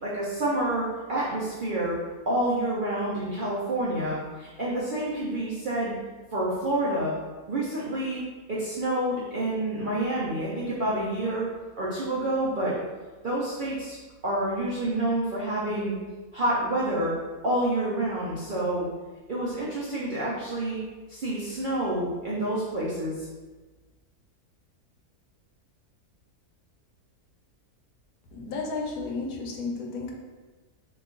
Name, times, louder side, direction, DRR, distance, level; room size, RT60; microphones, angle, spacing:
voice 1, 0.0-2.0 2.3-5.9 6.3-7.1 7.5-8.2 8.5-11.5 11.8-12.7 13.2-14.0 14.2-15.9 16.3-17.1 17.4-18.9 19.3-20.8 21.1-23.3, right 1 dB, 80° right, -7 dB, 0.4 m, -28 dB
voice 2, 28.3-30.1, left 3 dB, 75° left, 0 dB, 1.0 m, -32 dB
2.9 x 2.3 x 3.7 m, 1.3 s
omnidirectional pair, 1.6 m